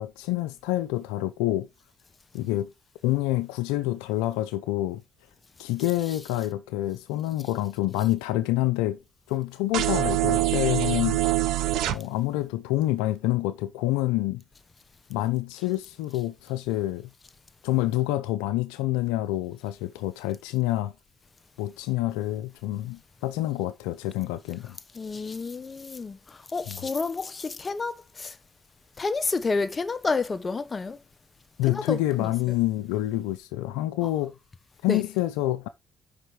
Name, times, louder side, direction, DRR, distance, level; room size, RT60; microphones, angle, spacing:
voice 1, 0.0-1.7 2.3-2.7 3.0-5.0 5.6-9.0 9.3-11.2 11.9-14.4 15.1-17.1 17.6-20.9 21.6-24.8 26.7-26.8 31.6-34.3 34.8-35.7, left 15 dB, 90° left, 0.4 m, -27 dB
sound 1, 9.7-11.9, right 15 dB, 80° right, 0.6 m, -24 dB
voice 2, 24.9-28.4 29.0-31.0 31.7-32.3 34.9-35.0, left 4 dB, 35° left, 1.0 m, -30 dB
5.4 x 4.9 x 5.9 m
supercardioid pair, 55°, 0 cm